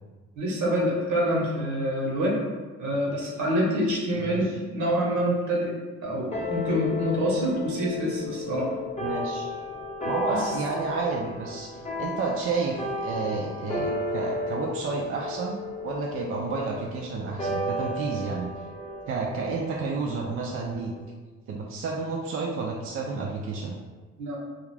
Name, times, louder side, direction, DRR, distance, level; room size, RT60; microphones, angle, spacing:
voice 1, 0.4-2.4 2.8-5.7 6.0-8.7 10.3-10.5 24.2-24.4, equal, 70° right, -4 dB, 1.0 m, -26 dB
voice 2, 4.2-4.6 9.0-9.5 10.0-18.5 19.1-20.9 21.5-23.7, right 4 dB, 45° right, -1 dB, 0.4 m, -31 dB
sound 1, 6.3-21.0, left 1 dB, 20° left, 0.7 m, -34 dB
2.4 x 2.4 x 3.2 m, 1.3 s
cardioid pair, 90°, 30 cm